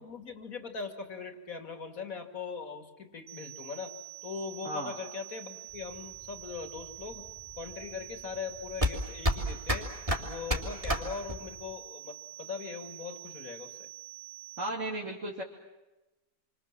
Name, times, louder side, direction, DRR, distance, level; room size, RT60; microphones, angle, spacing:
voice 1, 0.0-3.9 4.2-7.3 7.6-9.9 10.2-13.9, left 5 dB, 60° left, 6 dB, 3.0 m, -40 dB
sound 1, 3.3-14.7, right 18 dB, 75° right, 2.5 m, -47 dB
voice 2, 4.6-4.9 14.6-15.4, right 1 dB, 50° right, -3 dB, 3.1 m, -35 dB
sound 2, 5.7-11.7, equal, 20° right, 3.6 m, -32 dB
28.0 x 25.0 x 7.5 m, 1.0 s
omnidirectional pair, 1.7 m